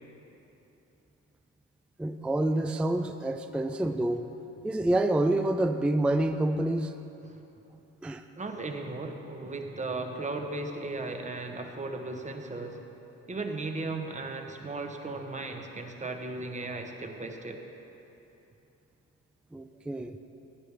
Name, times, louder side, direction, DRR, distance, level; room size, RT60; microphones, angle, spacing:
voice 1, 2.0-4.3 4.6-7.0 8.0-8.2 19.5-20.2, right 1 dB, 5° right, 8 dB, 0.3 m, -27 dB
voice 2, 8.4-12.8 13.3-17.6, right 2 dB, 25° right, 4 dB, 1.0 m, -36 dB
14.0 x 9.4 x 3.4 m, 3.0 s
cardioid pair, 90°, 30 cm